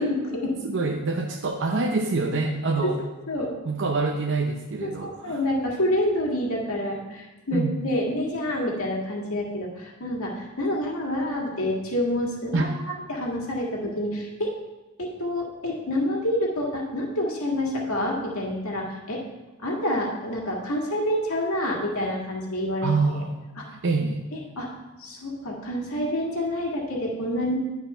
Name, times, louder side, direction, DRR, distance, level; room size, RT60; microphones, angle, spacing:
voice 1, 0.0-0.6 3.3-3.5 4.8-14.5 15.0-19.2 19.6-22.9 23.6-23.7 24.3-24.7 25.0-27.5, left 1 dB, 85° left, -2 dB, 1.8 m, -28 dB
voice 2, 0.6-3.0 3.6-5.4 7.5-7.8 12.5-12.6 22.8-23.4 23.7-24.2, right 3 dB, 60° right, 2 dB, 0.7 m, -26 dB
11.0 x 4.6 x 5.5 m, 1.2 s
head